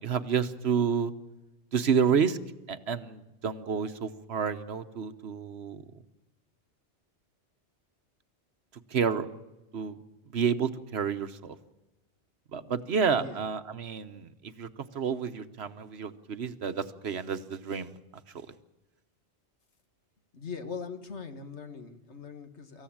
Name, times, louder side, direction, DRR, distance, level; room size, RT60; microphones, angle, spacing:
voice 1, 0.0-1.1 1.7-2.4 2.7-5.8 8.9-9.3 9.7-10.0 10.3-11.6 12.5-17.9 18.3-18.5, right 6 dB, 70° right, 11 dB, 1.3 m, -29 dB
voice 2, 20.3-22.8, left 5 dB, 85° left, 7 dB, 2.0 m, -41 dB
24.5 x 15.0 x 8.7 m, 1.0 s
omnidirectional pair, 1.1 m